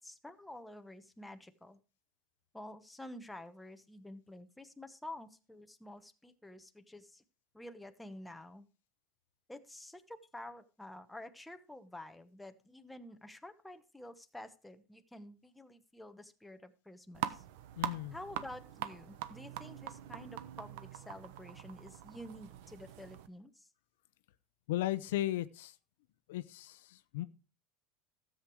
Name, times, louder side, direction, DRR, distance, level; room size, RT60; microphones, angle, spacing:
voice 1, 0.0-1.8 2.5-7.2 7.5-8.7 9.5-17.4 18.1-23.7, left 1 dB, 5° left, 1.0 m, -50 dB
sound 1, 17.1-23.3, right 12 dB, 75° right, 1.0 m, -43 dB
voice 2, 17.8-18.2 24.7-25.8 26.3-27.2, left 14 dB, 85° left, 0.7 m, -36 dB
13.0 x 7.9 x 4.6 m
supercardioid pair, 130°, 0 cm